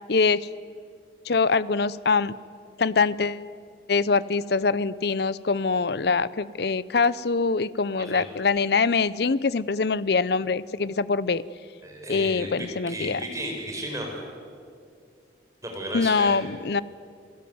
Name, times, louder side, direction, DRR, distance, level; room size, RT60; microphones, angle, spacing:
voice 1, 0.1-0.4 1.2-2.3 2.8-3.4 3.9-11.4 12.1-13.2 15.9-16.8, left 4 dB, 55° left, 19 dB, 0.6 m, -24 dB
voice 2, 11.8-14.1 15.6-16.3, right 1 dB, 15° right, 1 dB, 5.0 m, -34 dB
28.0 x 17.5 x 9.5 m, 2.3 s
head